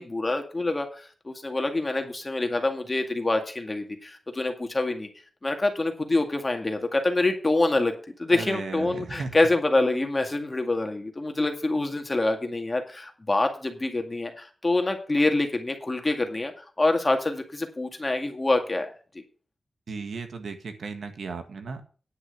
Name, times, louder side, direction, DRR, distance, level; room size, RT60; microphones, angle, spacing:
voice 1, 0.0-5.1 5.4-7.9 8.2-16.5 16.8-18.9, left 2 dB, 25° left, 4 dB, 2.1 m, -26 dB
voice 2, 8.3-9.3 19.9-21.8, right 4 dB, 90° right, 6 dB, 1.7 m, -35 dB
10.0 x 6.2 x 7.0 m, 0.39 s
wide cardioid pair, 110°, 0 cm